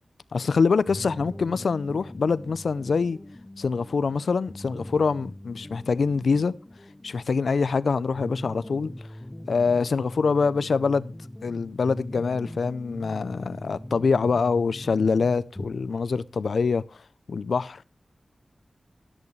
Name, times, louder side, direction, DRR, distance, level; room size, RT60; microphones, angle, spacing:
voice 1, 0.3-3.2 3.6-6.5 7.0-8.9 9.5-11.1 11.4-16.8 17.3-17.8, left 5 dB, 85° left, 0.6 m, -24 dB
sound 1, 0.9-15.7, left 1 dB, 20° left, 0.6 m, -41 dB
13.5 x 11.0 x 3.2 m
wide cardioid pair, 90°, 0 cm